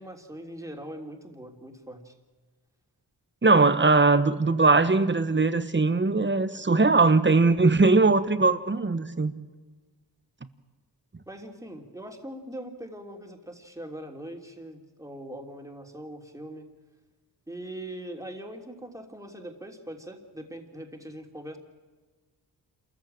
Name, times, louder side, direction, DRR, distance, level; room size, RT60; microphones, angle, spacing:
voice 1, 0.0-2.1 11.3-16.7 17.5-21.6, right 1 dB, 10° right, 3.2 m, -41 dB
voice 2, 3.4-9.3, right 3 dB, 30° right, 1.4 m, -20 dB
27.5 x 14.5 x 9.0 m
cardioid pair, 85°, 41 cm